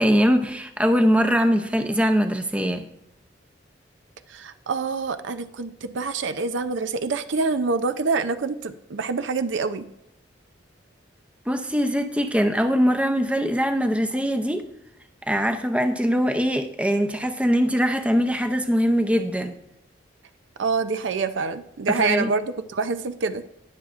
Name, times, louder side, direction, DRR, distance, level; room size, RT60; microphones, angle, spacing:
voice 1, 0.0-2.9 11.5-14.7 15.2-19.6 21.9-22.3, equal, 5° right, 7 dB, 0.6 m, -22 dB
voice 2, 4.3-9.9 20.6-23.4, right 4 dB, 85° right, 11 dB, 0.6 m, -26 dB
20.0 x 7.2 x 2.5 m, 0.82 s
head